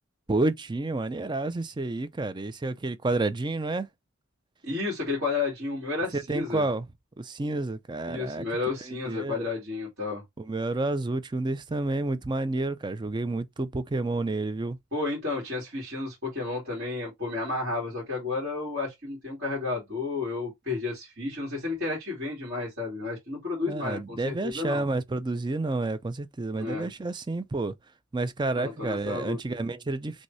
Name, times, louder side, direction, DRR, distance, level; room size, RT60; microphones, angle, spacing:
voice 1, 0.3-3.9 6.1-6.9 7.2-8.5 8.9-9.4 10.4-14.8 23.7-27.7 28.1-30.2, right 2 dB, 20° right, 0.4 m, -30 dB
voice 2, 4.6-6.6 8.1-10.2 14.9-24.8 26.6-26.9 28.6-29.4, left 3 dB, 45° right, 2.4 m, -32 dB
6.3 x 2.7 x 2.7 m
head